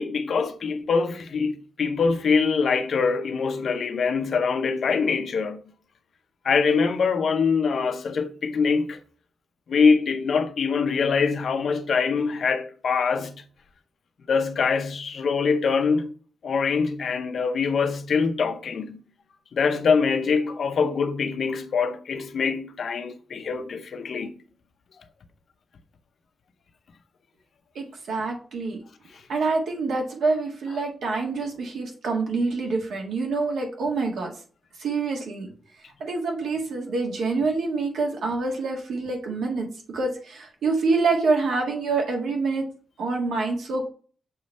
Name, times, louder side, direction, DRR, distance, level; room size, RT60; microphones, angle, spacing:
voice 1, 0.0-5.6 6.4-9.0 9.7-13.3 14.3-16.1 16.4-19.0 19.5-24.3, left 5 dB, 55° left, 0.7 m, -24 dB
voice 2, 27.8-28.8 29.3-34.3 34.8-35.5 36.0-42.6 43.0-43.8, right 3 dB, 85° right, 1.7 m, -26 dB
6.8 x 3.1 x 5.4 m
wide cardioid pair, 150°, 0 cm